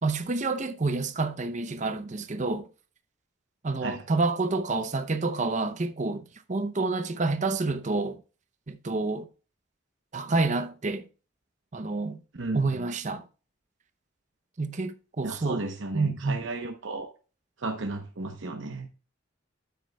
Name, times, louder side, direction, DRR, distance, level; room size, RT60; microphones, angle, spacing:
voice 1, 0.0-2.6 3.6-8.2 8.7-9.3 10.1-11.0 11.7-12.2 12.5-13.2 14.6-15.6 15.9-16.4, right 3 dB, 35° right, 0.6 m, -28 dB
voice 2, 12.3-12.9 15.2-17.1 17.6-18.9, right 2 dB, 70° right, 0.9 m, -34 dB
9.3 x 8.2 x 2.3 m
head